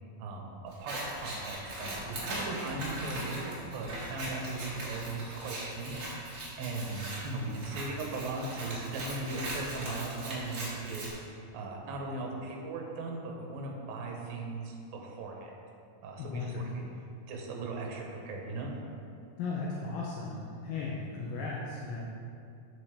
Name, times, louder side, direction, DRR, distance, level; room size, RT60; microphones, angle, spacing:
voice 1, 0.2-6.0 6.6-11.1 11.5-15.5 16.0-16.9 17.3-18.7, right 3 dB, 70° right, 0 dB, 2.7 m, -38 dB
Scissors, 0.7-11.1, right 1 dB, 45° right, 2.0 m, -40 dB
voice 2, 16.2-17.0 19.4-22.0, left 3 dB, 80° left, -4 dB, 2.6 m, -36 dB
8.0 x 8.0 x 3.4 m, 2.5 s
omnidirectional pair, 4.4 m